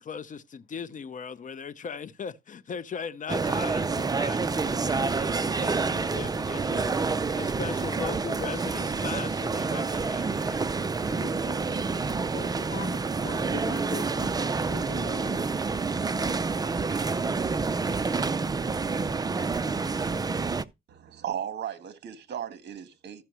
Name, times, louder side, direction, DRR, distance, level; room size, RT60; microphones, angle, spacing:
voice 1, 0.0-6.9 7.3-10.6 11.1-12.0, left 6 dB, 40° left, 0.8 m, -39 dB
sound 1, 3.3-20.6, right 4 dB, 20° right, 0.4 m, -28 dB
voice 2, 12.3-15.5, left 11 dB, 70° left, 1.3 m, -42 dB
voice 3, 20.9-23.2, right 9 dB, 60° right, 1.4 m, -36 dB
13.5 x 5.7 x 3.0 m
cardioid pair, 90°, 20 cm